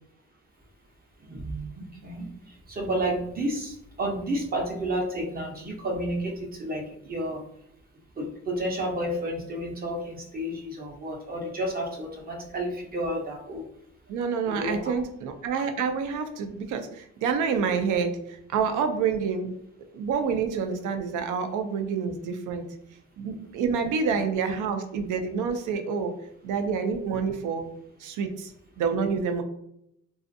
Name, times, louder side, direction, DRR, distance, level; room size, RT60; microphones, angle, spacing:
voice 1, 1.2-7.5 8.2-13.7 14.4-15.0 23.8-23.9, right 1 dB, 30° right, 1 dB, 0.6 m, -31 dB
voice 2, 14.1-18.2 18.5-19.5 19.9-22.7 23.2-26.1 26.4-27.7 28.0-28.5 28.8-29.4, right 6 dB, 80° right, 7 dB, 0.5 m, -27 dB
2.5 x 2.4 x 2.6 m, 0.75 s
cardioid pair, 90°, 30 cm